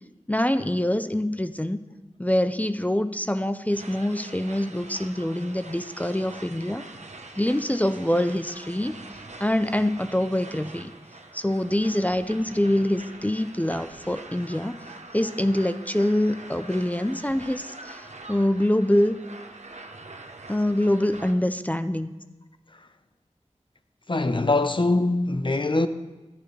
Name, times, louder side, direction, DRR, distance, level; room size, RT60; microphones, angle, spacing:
voice 1, 0.3-1.8 2.2-6.8 7.4-9.0 9.4-10.9 11.3-14.8 15.1-19.2 20.5-22.1, left 1 dB, 10° left, 0.5 m, -25 dB
sound 1, 3.7-21.3, right 2 dB, 70° right, 1.0 m, -44 dB
voice 2, 24.1-25.9, left 2 dB, 40° left, 0.8 m, -22 dB
15.0 x 14.5 x 3.3 m
wide cardioid pair, 55°, 12 cm